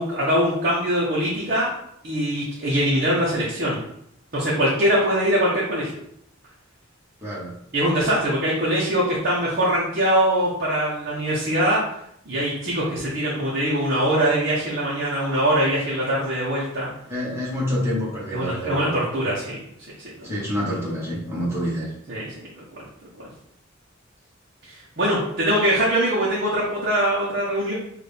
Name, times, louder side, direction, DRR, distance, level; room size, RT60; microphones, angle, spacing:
voice 1, 0.0-1.7 2.0-3.8 4.3-5.9 7.7-11.8 12.3-16.9 18.3-19.6 20.0-20.1 22.1-22.6 23.2-23.3 24.6-27.7, equal, 50° right, -8 dB, 1.0 m, -22 dB
voice 2, 7.2-7.6 17.1-18.9 20.2-21.9, equal, 15° right, -7 dB, 1.5 m, -27 dB
4.2 x 2.6 x 3.5 m, 0.73 s
head